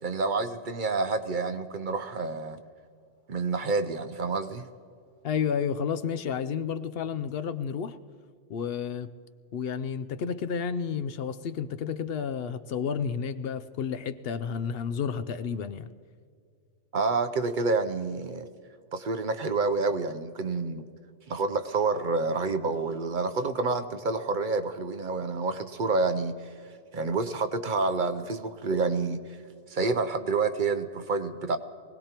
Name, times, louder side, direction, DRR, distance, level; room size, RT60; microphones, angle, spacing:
voice 1, 0.0-2.6 3.3-4.6 16.9-18.5 18.9-20.9 21.3-26.5 26.9-29.2 29.7-31.6, right 3 dB, 55° right, 0.8 m, -28 dB
voice 2, 5.2-8.0 8.5-9.1 9.5-15.9, left 7 dB, 70° left, 0.8 m, -31 dB
24.0 x 18.0 x 2.9 m
omnidirectional pair, 1.1 m